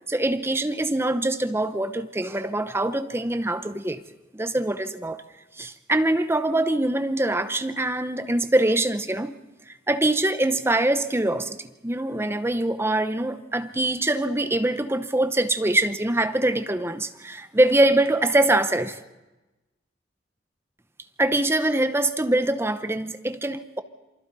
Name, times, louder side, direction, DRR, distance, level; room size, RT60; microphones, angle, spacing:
voice 1, 0.1-4.0 4.3-5.2 5.6-9.4 9.7-19.0 21.2-23.8, right 1 dB, 15° right, 0.7 m, -24 dB
27.5 x 25.0 x 4.1 m
head